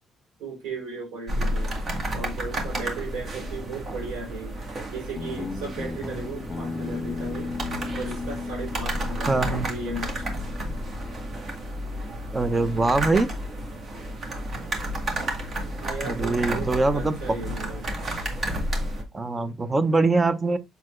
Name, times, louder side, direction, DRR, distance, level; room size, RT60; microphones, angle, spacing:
voice 1, 0.4-1.7 2.1-4.6 4.9-7.5 8.0-10.3 15.8-17.9, right 3 dB, 85° right, 4.0 m, -36 dB
sound 1, 1.3-19.0, right 1 dB, 50° right, 2.0 m, -31 dB
Guitar, 5.2-11.7, left 4 dB, 30° left, 1.4 m, -36 dB
voice 2, 9.3-9.7 12.3-13.3 16.0-17.2 19.1-20.6, right 3 dB, 25° right, 0.8 m, -23 dB
6.9 x 4.3 x 3.2 m
cardioid pair, 90°, 0 cm